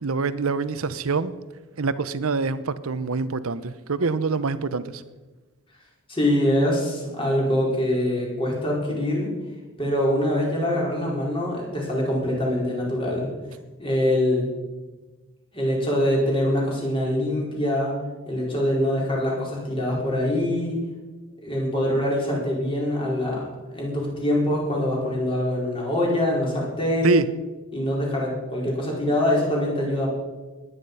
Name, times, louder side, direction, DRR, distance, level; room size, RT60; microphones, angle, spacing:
voice 1, 0.0-1.3 1.8-5.0 27.0-27.2, right 4 dB, 85° right, 14 dB, 0.8 m, -25 dB
voice 2, 6.1-9.3 9.8-13.3 13.8-14.5 15.5-17.9 18.2-20.8 21.4-23.4 23.7-27.2 27.7-30.1, left 1 dB, 25° left, -3 dB, 4.8 m, -24 dB
20.5 x 9.6 x 5.6 m, 1.2 s
head